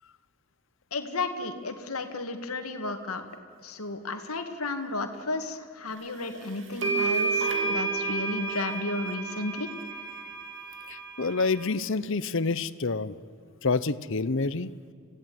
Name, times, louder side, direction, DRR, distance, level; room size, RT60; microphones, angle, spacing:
voice 1, 0.9-3.2 3.6-9.7, left 2 dB, 85° left, 6 dB, 2.1 m, -33 dB
sound 1, 6.2-6.3 6.8-11.6, right 4 dB, 60° right, 3.1 m, -31 dB
voice 2, 10.9-13.1 13.6-14.7, left 4 dB, 60° left, 16 dB, 0.9 m, -28 dB
27.0 x 17.0 x 9.4 m, 2.2 s
head